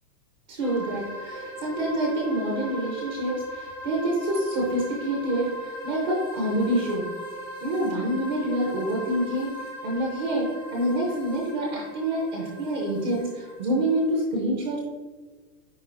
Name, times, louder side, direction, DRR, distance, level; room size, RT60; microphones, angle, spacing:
voice 1, 0.5-7.0 7.6-9.5 9.8-14.8, right 1 dB, 25° right, -3 dB, 0.9 m, -27 dB
sound 1, 0.6-14.2, right 1 dB, 15° left, 0.5 m, -39 dB
9.9 x 3.7 x 2.7 m, 1.4 s
supercardioid pair, 175°, 50 cm